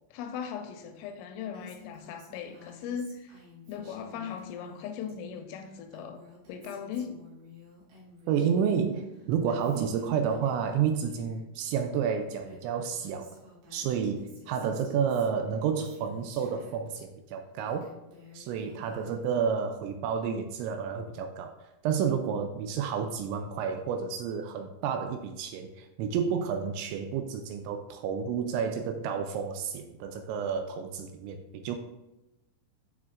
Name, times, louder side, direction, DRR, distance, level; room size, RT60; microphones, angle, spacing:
voice 1, 0.1-3.4 3.7-6.2 6.5-7.2, left 7 dB, 85° left, 3.1 m, -38 dB
Female speech woman speaking, 1.5-5.1 5.4-8.7 9.0-11.4 12.0-12.1 12.3-17.0 17.5-19.4, left 2 dB, 60° right, 3.6 m, -54 dB
voice 2, 8.3-13.3 13.7-17.9 18.3-21.6 21.8-31.8, right 7 dB, 85° right, 2.7 m, -30 dB
13.5 x 4.8 x 2.5 m
omnidirectional pair, 5.7 m